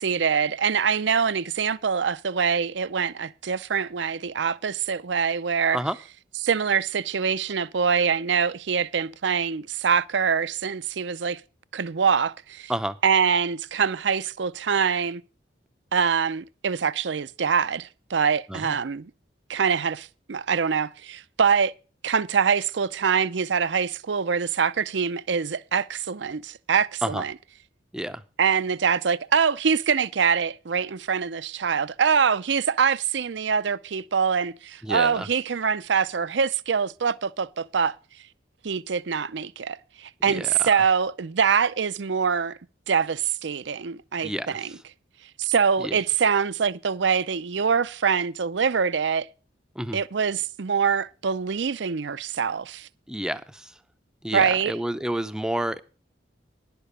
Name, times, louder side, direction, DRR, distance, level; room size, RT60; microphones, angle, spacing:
voice 1, 0.0-5.8 6.4-11.4 11.7-12.7 13.0-15.2 15.9-19.1 19.5-21.7 22.0-27.3 28.4-37.9 38.6-42.6 42.9-44.7 45.4-49.3 49.9-52.9 54.3-54.7, right 6 dB, 75° right, 0.6 m, -24 dB
voice 2, 34.8-35.3 40.3-40.6 44.2-44.8 45.8-46.0 49.8-50.0 53.1-53.8 54.2-55.8, right 1 dB, 5° right, 0.6 m, -30 dB
11.0 x 6.9 x 6.7 m
head